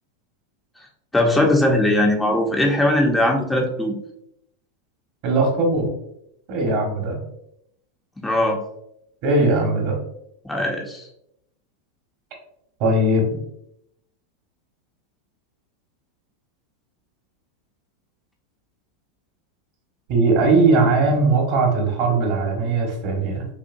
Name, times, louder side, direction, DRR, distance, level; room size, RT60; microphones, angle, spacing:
voice 1, 1.1-3.9 8.2-8.6 10.4-11.0, left 1 dB, 10° left, 1 dB, 0.6 m, -19 dB
voice 2, 5.2-5.9 6.5-7.2 9.2-10.0 12.8-13.4 20.1-23.5, right 2 dB, 55° right, 1 dB, 1.3 m, -19 dB
5.6 x 2.2 x 2.6 m, 0.77 s
hypercardioid pair, 110°, 0 cm